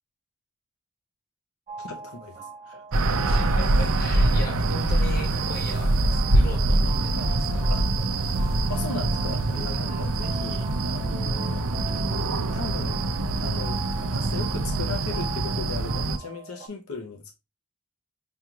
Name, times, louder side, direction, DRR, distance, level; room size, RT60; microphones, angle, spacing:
sound 1, 1.7-16.7, right 2 dB, 30° right, 0.7 m, -42 dB
voice 1, 1.8-2.8 7.1-7.3 7.7-8.0 8.7-13.1 13.4-17.4, left 3 dB, 85° left, 0.7 m, -37 dB
sound 2, 2.9-16.2, right 2 dB, 80° right, 0.5 m, -24 dB
voice 2, 3.2-7.7 9.7-10.2, left 1 dB, 45° left, 1.1 m, -37 dB
5.4 x 2.3 x 2.9 m
head